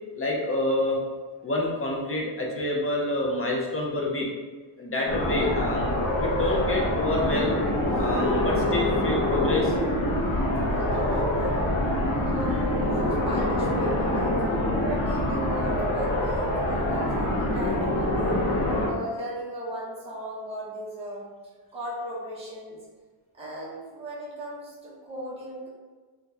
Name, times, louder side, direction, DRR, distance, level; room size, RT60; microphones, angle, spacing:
voice 1, 0.1-1.0 1.4-4.3 4.8-7.5 7.9-9.7, left 2 dB, 30° left, -2 dB, 0.4 m, -27 dB
sound 1, 5.1-18.9, left 1 dB, 85° left, 0.9 m, -25 dB
voice 2, 10.6-11.7 12.2-14.4 14.8-18.4 18.9-21.3 21.7-22.8 23.3-25.7, right 1 dB, 10° right, -7 dB, 0.7 m, -37 dB
3.9 x 2.3 x 2.6 m, 1.4 s
wide cardioid pair, 170°, 49 cm